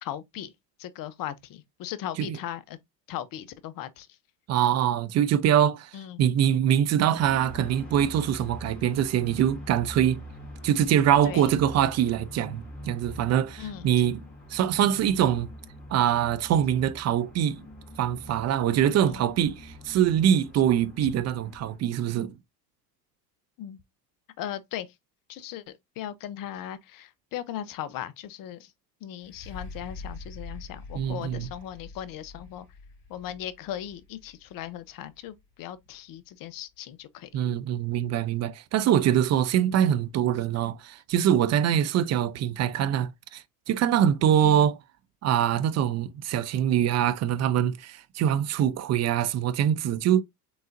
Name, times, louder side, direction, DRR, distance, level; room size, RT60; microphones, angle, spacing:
voice 1, 0.0-0.5 0.8-2.8 3.1-4.2 5.9-6.2 11.2-11.5 13.6-14.0 19.0-19.3 23.6-23.8 24.4-24.9 25.3-28.7 29.0-32.7 33.1-37.4 44.4-44.7, left 11 dB, 45° left, 0.7 m, -38 dB
voice 2, 4.5-10.2 10.6-14.2 14.5-15.5 15.9-17.7 18.0-22.3 30.9-31.5 37.3-44.7 45.2-50.2, right 10 dB, 35° right, 0.5 m, -24 dB
sound 1, 7.2-21.8, equal, ahead, 2.6 m, -44 dB
sound 2, 29.2-36.9 37.6-37.7, left 3 dB, 20° left, 2.6 m, -45 dB
3.9 x 3.8 x 2.5 m
hypercardioid pair, 85°, 48 cm